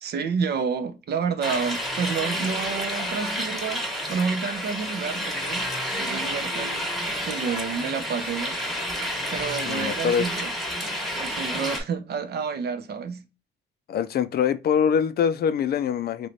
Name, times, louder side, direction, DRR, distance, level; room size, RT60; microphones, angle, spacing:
voice 1, 0.0-3.8 4.1-5.7 6.0-6.9 7.2-8.6 9.3-10.5 11.1-13.2, right 6 dB, 55° right, 0.6 m, -29 dB
sound 1, 1.4-11.8, equal, ahead, 1.1 m, -30 dB
voice 2, 9.6-10.3 13.9-16.3, left 7 dB, 55° left, 0.4 m, -24 dB
3.2 x 3.0 x 2.6 m
cardioid pair, 90°, 20 cm